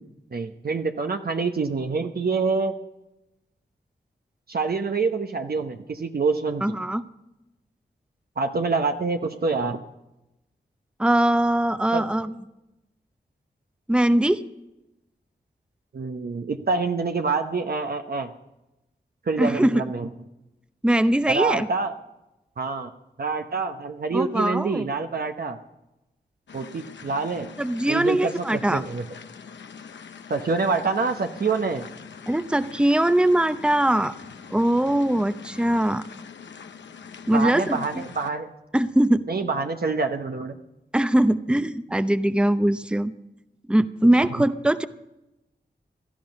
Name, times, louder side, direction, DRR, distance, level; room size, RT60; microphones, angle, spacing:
voice 1, 0.3-2.7 4.5-6.6 8.4-9.8 11.9-12.1 15.9-18.3 19.3-20.1 21.3-21.9 22.6-22.9 23.2-25.6 26.5-27.5 27.9-29.0 30.3-31.9 37.3-38.5 39.3-40.6 44.2-44.3, right 4 dB, 60° right, 5 dB, 1.0 m, -26 dB
voice 2, 6.6-7.0 11.0-12.3 13.9-14.4 19.4-19.8 20.8-21.7 24.1-24.8 27.6-28.8 32.3-34.1 34.5-36.0 37.3-38.0 38.7-39.2 40.9-43.1 43.7-44.9, right 1 dB, 5° right, 12 dB, 0.7 m, -21 dB
sound 1, 26.5-38.3, left 6 dB, 85° left, 0.8 m, -43 dB
16.5 x 12.5 x 5.3 m, 0.94 s
cardioid pair, 45°, 18 cm